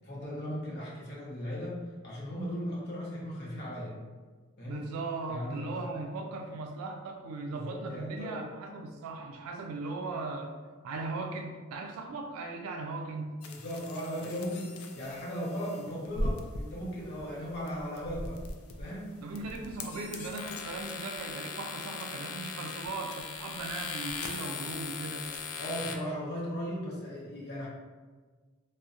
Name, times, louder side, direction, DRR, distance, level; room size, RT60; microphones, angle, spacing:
voice 1, 0.0-3.9 4.6-4.8 5.3-5.8 7.4-8.4 13.4-18.4 18.8-19.1 25.5-27.7, equal, 50° left, -6 dB, 0.7 m, -37 dB
voice 2, 4.7-10.5 10.8-13.3 19.2-25.3, right 3 dB, 80° right, 7 dB, 0.3 m, -38 dB
sound 1, 13.4-26.0, left 3 dB, 75° left, 0.3 m, -39 dB
2.6 x 2.1 x 2.4 m, 1.4 s
head